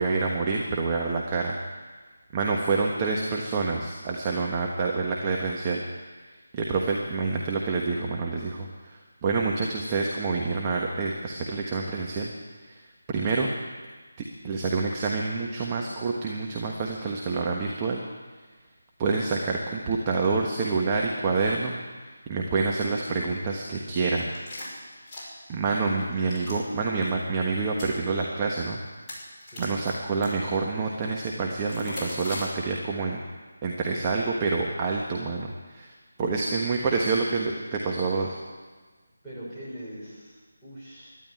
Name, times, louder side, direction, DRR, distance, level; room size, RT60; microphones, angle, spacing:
voice 1, 0.0-1.5 2.3-5.8 6.5-8.7 9.2-12.3 12.7-12.8 13.1-13.5 14.4-18.0 19.0-21.8 22.3-24.2 25.5-28.8 29.6-33.2 33.6-35.9 36.2-38.4, right 4 dB, 20° right, -1 dB, 1.3 m, -27 dB
sound 1, 24.2-25.6 25.9-26.6 26.9-27.1 27.6-28.0 28.6-28.7 29.0-30.3 31.7-32.5, left 1 dB, 20° left, 5.4 m, -39 dB
voice 2, 39.2-41.2, right 1 dB, 5° right, -12 dB, 6.1 m, -42 dB
12.5 x 11.0 x 9.6 m, 1.4 s
figure-of-eight pair, 160°, 0 cm